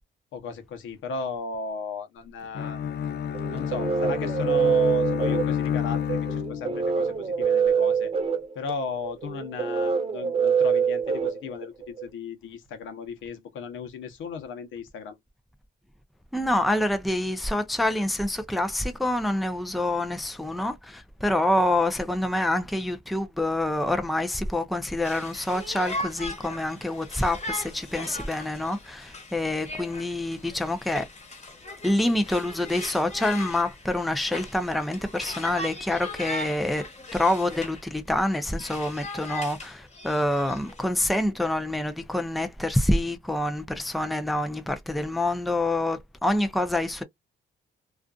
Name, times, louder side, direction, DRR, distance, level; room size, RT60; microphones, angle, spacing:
voice 1, 0.3-2.8 3.5-8.1 8.6-15.2, left 4 dB, 80° left, 0.8 m, -36 dB
Bowed string instrument, 2.5-7.0, left 8 dB, 55° left, 0.5 m, -29 dB
sound 1, 3.3-12.0, right 6 dB, 30° right, 0.9 m, -25 dB
voice 2, 16.3-31.1 31.8-36.8 37.1-47.0, left 1 dB, ahead, 0.4 m, -26 dB
Conversation, 25.0-37.8 38.2-40.8, left 2 dB, 35° left, 1.1 m, -39 dB
2.5 x 2.4 x 2.3 m
cardioid pair, 90°, 20 cm